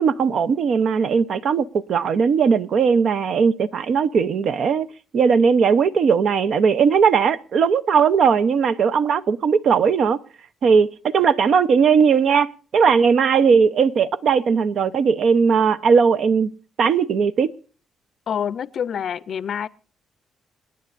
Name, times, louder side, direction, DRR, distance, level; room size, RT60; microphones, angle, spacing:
voice 1, 0.0-4.9 5.1-10.2 10.6-16.5 16.8-17.5, right 6 dB, 60° right, 0.8 m, -18 dB
voice 2, 18.3-19.7, left 8 dB, 60° left, 0.6 m, -27 dB
27.5 x 10.0 x 2.6 m
cardioid pair, 90°, 0 cm